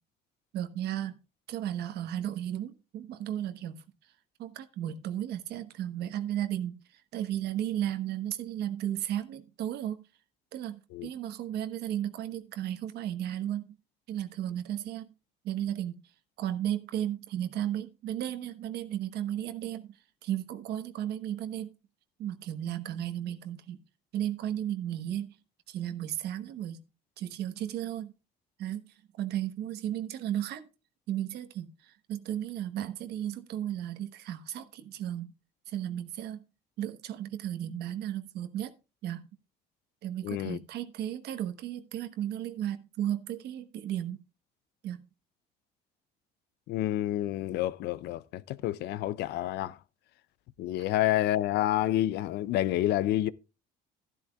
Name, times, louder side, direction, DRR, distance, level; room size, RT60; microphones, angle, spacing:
voice 1, 0.5-1.2 1.5-3.8 4.4-10.1 10.5-13.8 14.1-15.1 15.4-16.0 16.4-21.7 22.2-23.8 24.1-25.4 25.7-26.8 27.2-28.1 28.6-30.6 31.1-35.3 35.7-36.4 36.8-38.7 39.0-39.3 40.0-44.2 44.8-45.0, right 11 dB, 75° right, 1.2 m, -34 dB
voice 2, 40.2-40.6 46.7-49.8 50.6-53.3, left 13 dB, 80° left, 0.6 m, -29 dB
13.0 x 12.0 x 2.3 m
cardioid pair, 110°, 17 cm